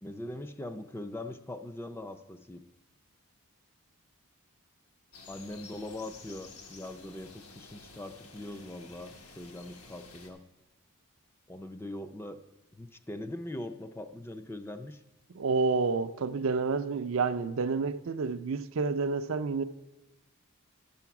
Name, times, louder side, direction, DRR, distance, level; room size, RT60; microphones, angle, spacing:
voice 1, 0.0-2.6 5.3-10.5 11.5-12.4 12.7-15.0, left 1 dB, 10° left, 0.4 m, -41 dB
sound 1, 5.1-10.3, left 3 dB, 85° left, 1.6 m, -51 dB
voice 2, 15.3-19.6, right 4 dB, 65° right, 0.4 m, -29 dB
11.5 x 7.0 x 5.9 m
head